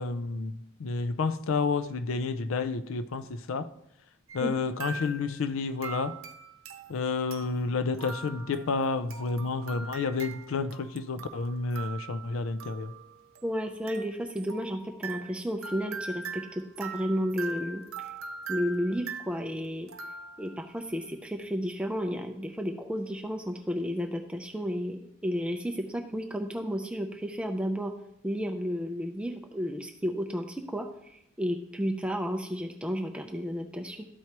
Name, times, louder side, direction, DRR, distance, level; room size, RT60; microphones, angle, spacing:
voice 1, 0.0-3.7 4.3-6.2 6.9-12.9, left 4 dB, 75° left, 0.5 m, -30 dB
sound 1, 4.3-4.5 4.8-5.4 5.8-20.7, right 5 dB, 85° right, 0.7 m, -42 dB
voice 2, 13.4-18.1 18.5-19.9 20.4-27.9 28.2-34.1, equal, 5° right, 0.4 m, -32 dB
13.0 x 4.6 x 2.9 m
head